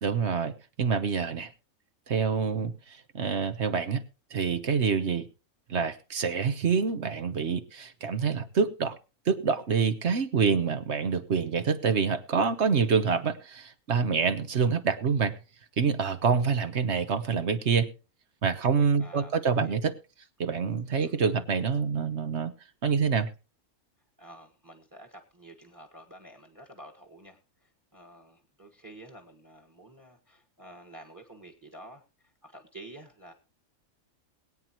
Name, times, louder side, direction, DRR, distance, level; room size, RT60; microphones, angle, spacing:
voice 1, 0.0-0.5 0.8-1.5 2.1-4.0 4.3-5.3 5.7-9.0 9.3-15.4 15.8-17.9 18.4-20.0 20.4-22.5 22.8-23.3, right 5 dB, 55° right, 11 dB, 1.2 m, -26 dB
voice 2, 19.0-19.9 21.0-21.2 24.2-33.3, right 1 dB, 15° right, 5 dB, 1.5 m, -50 dB
21.5 x 9.2 x 3.0 m, 0.32 s
omnidirectional pair, 1.4 m